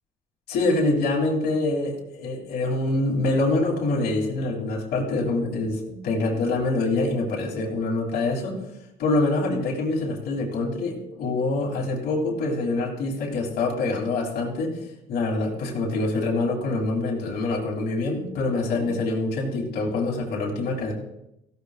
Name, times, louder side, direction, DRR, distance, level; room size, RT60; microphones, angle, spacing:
voice 1, 0.5-8.6 9.0-14.8 15.1-20.9, left 2 dB, 70° left, -2 dB, 3.0 m, -25 dB
16.0 x 13.0 x 2.4 m, 0.87 s
cardioid pair, 110°, 17 cm